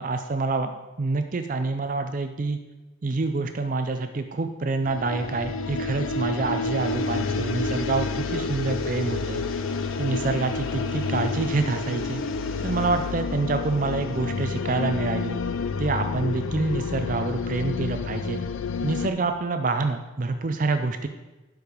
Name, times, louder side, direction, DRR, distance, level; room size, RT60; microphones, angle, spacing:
voice 1, 0.0-2.6 3.0-9.4 10.0-12.2 12.6-15.4 15.8-18.4 18.8-21.1, right 3 dB, 40° right, 7 dB, 0.4 m, -27 dB
sound 1, 4.8-19.1, left 4 dB, 85° left, 0.5 m, -29 dB
sound 2, 6.8-13.1, right 1 dB, ahead, 1.0 m, -44 dB
11.5 x 4.8 x 5.1 m, 1.1 s
head